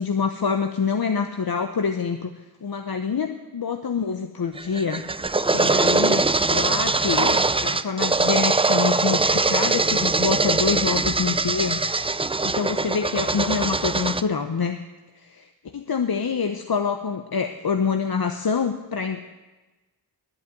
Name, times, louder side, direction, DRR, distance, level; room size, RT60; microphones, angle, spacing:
voice 1, 0.0-2.3 2.6-5.0 5.5-11.8 12.4-14.8 15.2-15.4 15.7-19.2, left 5 dB, 50° left, 6 dB, 0.9 m, -26 dB
sound 1, 4.6-14.2, right 3 dB, 15° right, 0.4 m, -22 dB
11.0 x 8.3 x 9.3 m, 1.1 s
cardioid pair, 45°, 45 cm